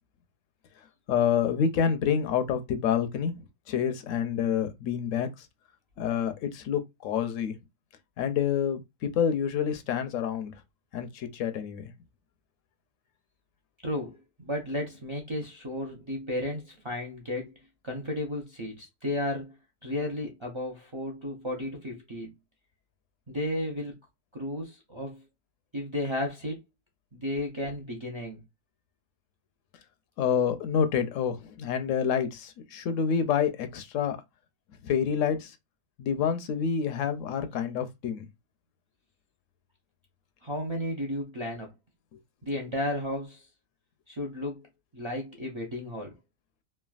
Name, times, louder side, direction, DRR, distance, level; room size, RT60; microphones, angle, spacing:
voice 1, 1.1-5.5 6.0-7.5 8.2-10.5 10.9-11.9 30.2-34.2 34.8-35.5 36.0-38.3, left 7 dB, 80° left, 0.9 m, -28 dB
voice 2, 13.8-17.5 17.8-19.5 19.8-22.3 23.3-23.9 24.3-25.2 25.7-26.6 27.1-28.4 40.4-41.7 42.4-43.5 44.1-44.7 44.9-46.1, left 1 dB, 40° right, 0.4 m, -33 dB
3.2 x 2.2 x 2.3 m
omnidirectional pair, 1.3 m